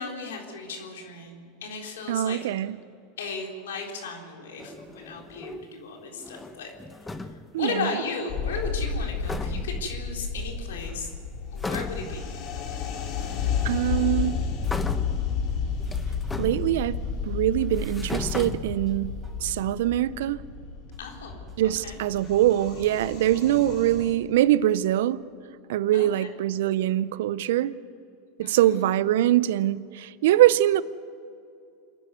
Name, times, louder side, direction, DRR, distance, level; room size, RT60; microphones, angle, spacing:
voice 1, 0.0-2.4 3.2-6.7 7.2-11.1 11.5-12.3 21.0-22.0 25.9-26.3 28.4-28.8, left 4 dB, 80° left, 1 dB, 3.7 m, -36 dB
voice 2, 2.1-2.8 7.5-7.9 13.6-14.4 16.4-17.0 17.2-19.1 19.4-20.4 21.6-25.2 25.7-27.7 28.4-30.8, right 13 dB, 70° right, 18 dB, 0.6 m, -23 dB
sound 1, 4.6-5.8 6.1-7.6 8.9-9.0 9.2-9.9 10.7-11.2 11.6-12.3 13.2-13.3 14.6-15.3 15.8-17.1 17.6-19.2, left 2 dB, 10° left, 1.2 m, -37 dB
sound 2, 8.3-24.1, left 6 dB, 55° left, 3.7 m, -31 dB
sound 3, 14.9-16.0 16.2-16.9 17.4-17.5 17.9-19.0 19.2-19.9 20.4-20.5 20.9-21.9 22.2-22.9 23.2-23.3, right 2 dB, 15° right, 4.8 m, -51 dB
27.0 x 11.0 x 9.4 m, 2.5 s
hypercardioid pair, 95°, 0 cm